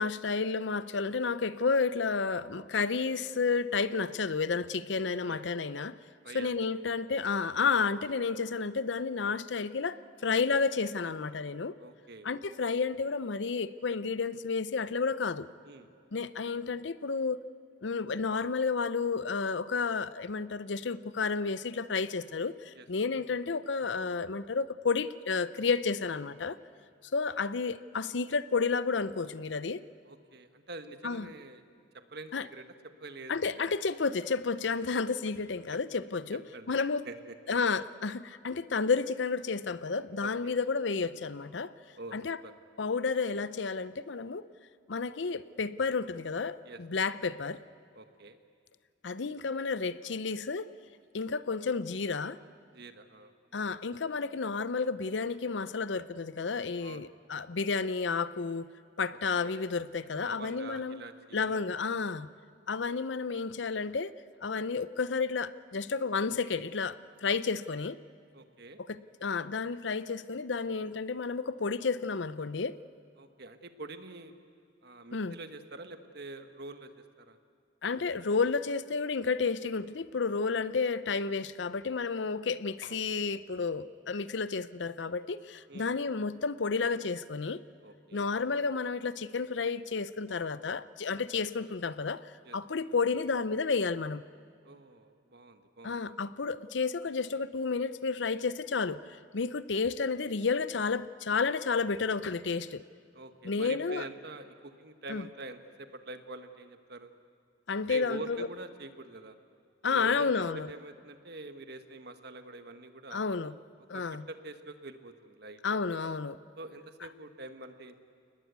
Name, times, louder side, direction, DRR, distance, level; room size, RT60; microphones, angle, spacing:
voice 1, 0.0-6.0 6.3-11.7 12.2-15.5 16.1-17.4 17.8-26.6 27.1-29.8 31.0-31.3 32.3-32.5 33.3-36.4 36.7-37.0 37.5-41.7 42.1-42.4 42.8-44.5 44.9-47.6 49.0-50.7 51.1-52.4 53.5-58.7 59.0-61.0 61.3-62.3 62.7-64.1 64.4-68.0 68.9-72.8 75.1-75.4 77.8-87.6 88.1-92.2 92.5-94.2 95.8-102.8 103.4-104.0 105.1-105.2 107.7-108.5 109.8-110.7 113.1-113.5 113.9-114.2 115.6-116.4, left 4 dB, 70° left, 0.6 m, -31 dB
voice 2, 5.0-5.4 6.2-6.5 11.8-12.3 15.6-15.9 22.7-22.9 30.0-31.6 31.9-32.6 33.0-33.6 36.5-36.7 37.0-37.3 40.2-40.6 42.0-42.1 42.4-42.5 46.6-46.8 47.9-48.4 52.7-53.3 56.8-57.1 59.3-59.6 60.2-61.6 68.3-68.8 73.2-74.3 74.8-77.4 82.9-83.3 85.7-85.9 87.8-88.3 92.4-92.6 94.6-96.0 103.1-107.1 107.9-109.4 109.8-113.2 113.9-115.8 116.6-117.9, right 2 dB, 60° right, 1.5 m, -46 dB
30.0 x 20.0 x 8.2 m
head